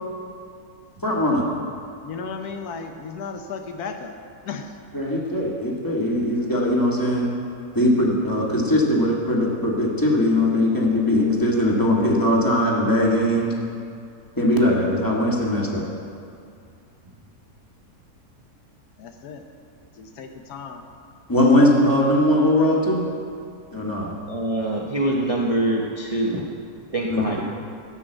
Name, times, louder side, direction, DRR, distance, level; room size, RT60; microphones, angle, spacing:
voice 1, 1.0-1.4 4.9-7.3 7.7-13.5 14.4-15.9 21.3-23.0 23.7-24.1 27.1-27.4, left 1 dB, 15° left, -3 dB, 1.7 m, -20 dB
voice 2, 2.0-4.2 4.4-4.8 19.0-19.4 19.9-20.8, left 5 dB, 75° left, 5 dB, 1.3 m, -34 dB
voice 3, 24.3-26.5 26.9-27.4, right 1 dB, 30° right, -2 dB, 0.7 m, -24 dB
13.0 x 6.1 x 7.8 m, 2.5 s
omnidirectional pair, 1.7 m